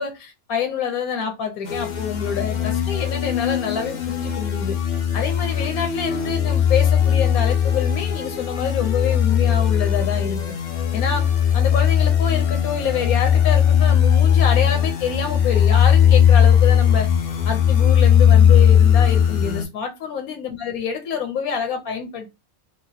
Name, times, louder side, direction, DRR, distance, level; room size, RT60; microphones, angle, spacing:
voice 1, 0.0-4.8 5.1-10.4 10.9-17.1 17.4-22.3, left 7 dB, 80° left, 1.2 m, -26 dB
sound 1, 1.7-19.6, left 8 dB, 50° left, 0.5 m, -18 dB
2.9 x 2.7 x 2.7 m
omnidirectional pair, 1.5 m